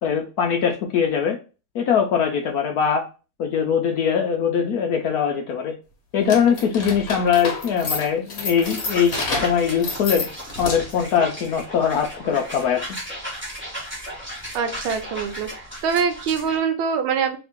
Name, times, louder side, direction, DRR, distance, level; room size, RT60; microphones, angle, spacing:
voice 1, 0.0-1.4 1.7-3.0 3.4-5.7 6.1-10.3 10.6-12.8, left 7 dB, 75° left, 3 dB, 0.8 m, -21 dB
sound 1, 6.2-11.1, left 3 dB, 50° left, 1.4 m, -30 dB
sound 2, 8.6-16.6, equal, 5° right, 1.0 m, -35 dB
voice 2, 14.5-17.4, right 6 dB, 75° right, 7 dB, 1.5 m, -24 dB
3.5 x 2.9 x 3.5 m, 0.33 s
omnidirectional pair, 2.3 m